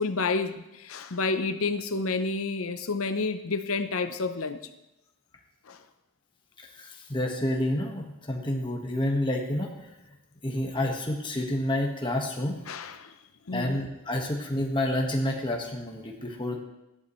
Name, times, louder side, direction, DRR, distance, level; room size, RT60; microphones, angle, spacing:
voice 1, 0.0-4.6 5.7-5.8 12.7-13.1 13.5-13.8, left 3 dB, 80° left, 10 dB, 0.7 m, -29 dB
voice 2, 6.8-9.7 10.4-12.6 13.5-16.6, left 1 dB, 20° left, 1 dB, 1.5 m, -29 dB
14.0 x 10.5 x 3.2 m, 0.93 s
head